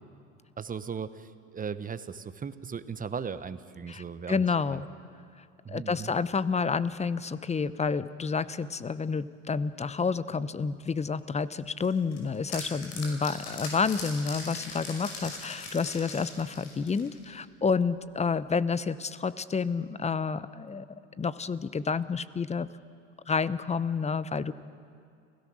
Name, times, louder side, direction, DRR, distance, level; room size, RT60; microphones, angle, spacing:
voice 1, 0.6-4.4 4.7-4.8 5.6-6.1, right 6 dB, 20° right, 13 dB, 1.1 m, -37 dB
voice 2, 3.9-4.9 5.7-20.9 21.2-22.7 23.3-24.5, left 5 dB, 15° left, 17 dB, 0.7 m, -29 dB
sound 1, 11.8-17.3, left 3 dB, 60° left, 6.0 m, -40 dB
30.0 x 16.5 x 6.3 m, 2.4 s
hypercardioid pair, 75°, 38 cm